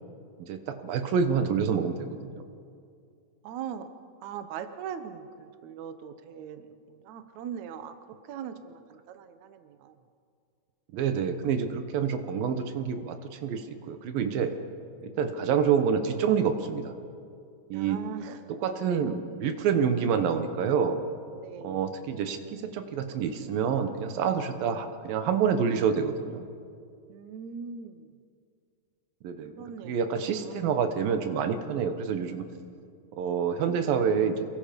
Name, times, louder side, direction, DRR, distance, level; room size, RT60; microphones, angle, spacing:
voice 1, 0.4-2.4 10.9-14.5 15.0-16.9 17.7-18.0 18.6-21.0 21.6-26.4 29.2-29.5 29.8-32.4 33.1-34.4, right 7 dB, 80° right, 8 dB, 3.0 m, -27 dB
voice 2, 3.4-3.9 4.2-8.0 8.2-10.0 17.7-19.1 21.3-22.0 27.1-28.1 29.6-30.2 30.4-30.7, right 8 dB, 65° right, 9 dB, 2.1 m, -41 dB
28.0 x 22.0 x 5.3 m, 2.3 s
omnidirectional pair, 4.0 m